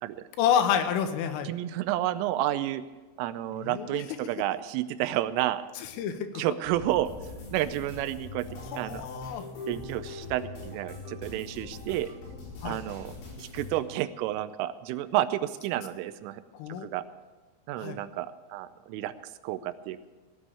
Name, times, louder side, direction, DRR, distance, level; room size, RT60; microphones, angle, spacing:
voice 1, 0.4-1.5 3.6-4.0 6.0-6.4 8.7-9.5 12.6-12.8 16.5-16.9 17.8-18.0, left 8 dB, 90° left, 7 dB, 3.7 m, -28 dB
voice 2, 1.4-2.8 3.2-5.6 6.4-7.1 7.5-8.5 8.7-9.1 9.7-12.1 12.7-16.4 16.8-17.0 17.7-19.1 19.4-20.1, right 14 dB, 90° right, 13 dB, 3.2 m, -30 dB
sound 1, 6.6-13.8, left 3 dB, 65° left, 7.0 m, -42 dB
18.0 x 7.7 x 8.3 m, 1.3 s
omnidirectional pair, 5.6 m